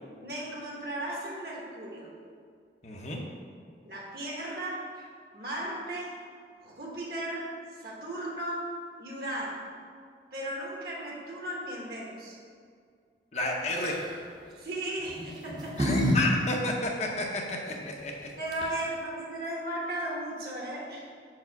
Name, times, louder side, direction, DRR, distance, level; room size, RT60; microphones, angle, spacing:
voice 1, 0.2-2.1 3.8-5.1 5.3-6.2 6.6-7.5 7.8-8.7 9.0-9.8 10.3-12.4 14.6-16.0 17.7-17.8 18.4-21.1, right 1 dB, 55° right, -3 dB, 1.1 m, -36 dB
voice 2, 2.8-3.2 13.3-14.0 15.8-18.3, left 2 dB, 40° left, 0 dB, 0.7 m, -31 dB
sound 1, 13.7-14.1 15.1-16.2 16.5-16.6 18.2-18.3 18.5-18.9, equal, 25° right, 0.6 m, -29 dB
4.7 x 4.3 x 5.8 m, 2.2 s
head